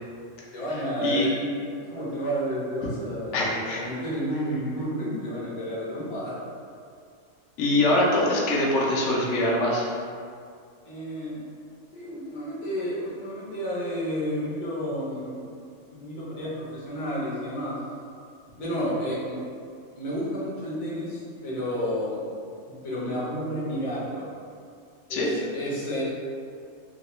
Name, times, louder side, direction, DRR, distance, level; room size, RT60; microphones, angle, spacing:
voice 1, 0.5-1.5 1.9-6.4 10.8-11.5 11.9-15.6 15.9-17.7 18.5-19.4 19.9-22.2 22.7-24.3 25.1-26.0, equal, 40° left, -7 dB, 0.6 m, -31 dB
voice 2, 3.3-3.8 7.6-9.9 25.1-25.3, left 1 dB, 70° left, -3 dB, 0.8 m, -23 dB
2.7 x 2.2 x 2.9 m, 2.3 s
omnidirectional pair, 1.3 m